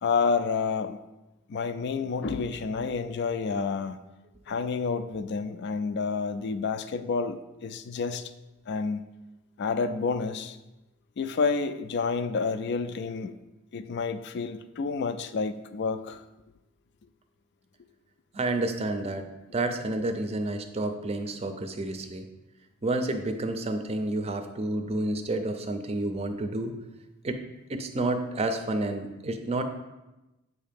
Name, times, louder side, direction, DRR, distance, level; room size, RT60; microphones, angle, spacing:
voice 1, 0.0-1.0 1.5-4.0 4.5-8.3 8.7-9.1 9.6-10.6 11.2-13.3 13.7-16.2, left 5 dB, 55° left, 11 dB, 0.4 m, -29 dB
voice 2, 18.3-19.2 19.5-22.2 22.8-26.7 27.2-27.4 27.7-29.6, right 2 dB, 30° right, 7 dB, 0.5 m, -30 dB
7.9 x 2.8 x 5.1 m, 1.0 s
head